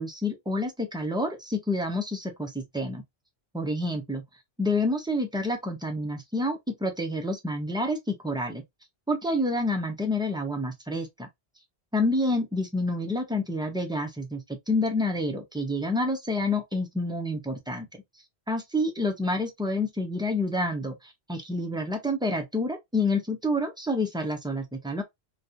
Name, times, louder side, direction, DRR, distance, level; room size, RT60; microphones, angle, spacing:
voice 1, 0.0-3.0 3.5-4.2 4.6-8.6 9.1-11.3 11.9-14.4 14.7-17.9 18.5-25.0, left 1 dB, 10° right, 0.3 m, -28 dB
2.7 x 2.3 x 2.2 m
omnidirectional pair, 1.1 m